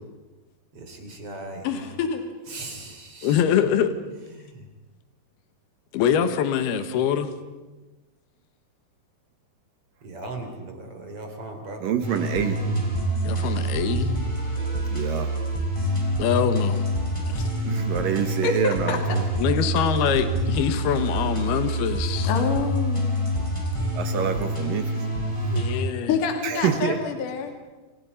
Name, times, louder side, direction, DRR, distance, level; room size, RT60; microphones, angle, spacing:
voice 1, 0.9-1.9 2.5-3.6 10.0-11.8, right 2 dB, 35° right, 4 dB, 4.2 m, -38 dB
voice 2, 1.6-2.2 17.3-17.5 18.2-19.0 22.2-23.1 26.1-27.5, left 6 dB, 55° left, 5 dB, 3.8 m, -27 dB
voice 3, 3.2-3.9 5.9-7.3 13.2-14.1 16.2-16.9 19.4-22.3 25.5-26.1, left 8 dB, 75° left, 9 dB, 3.4 m, -24 dB
voice 4, 11.8-12.6 14.9-15.3 17.7-19.2 23.9-25.0 26.4-27.0, right 8 dB, 65° right, 8 dB, 2.8 m, -26 dB
sound 1, 12.0-25.7, right 1 dB, 5° left, 5.9 m, -26 dB
28.5 x 28.0 x 5.6 m, 1.2 s
omnidirectional pair, 4.8 m